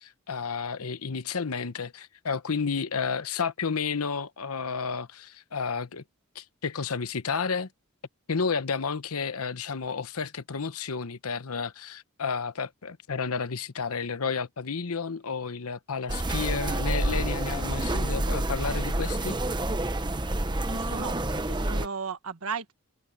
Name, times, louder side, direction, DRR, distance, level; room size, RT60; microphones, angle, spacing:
voice 1, 0.0-6.0 6.3-7.7 8.3-19.4, left 5 dB, 80° left, 0.9 m, -31 dB
sound 1, 16.1-21.9, right 1 dB, 20° right, 1.0 m, -28 dB
voice 2, 20.7-22.7, right 5 dB, 80° right, 1.4 m, -36 dB
head